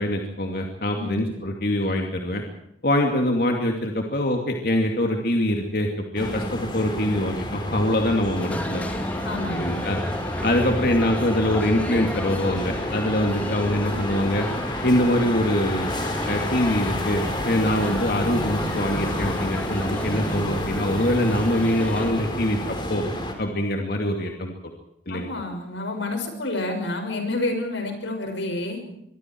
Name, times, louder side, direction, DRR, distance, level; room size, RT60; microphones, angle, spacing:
voice 1, 0.0-2.4 2.8-8.9 9.5-10.0 10.4-14.5 14.8-15.9 16.3-23.0 23.4-24.5 25.1-25.3, left 1 dB, 55° left, 2 dB, 2.6 m, -24 dB
sound 1, 6.2-23.3, left 1 dB, 25° left, 3.7 m, -30 dB
sound 2, 8.4-22.1, left 1 dB, 10° left, 2.1 m, -34 dB
voice 2, 9.2-9.8 25.1-28.8, left 2 dB, 90° left, 5 dB, 6.1 m, -29 dB
25.0 x 23.5 x 4.7 m, 0.79 s
head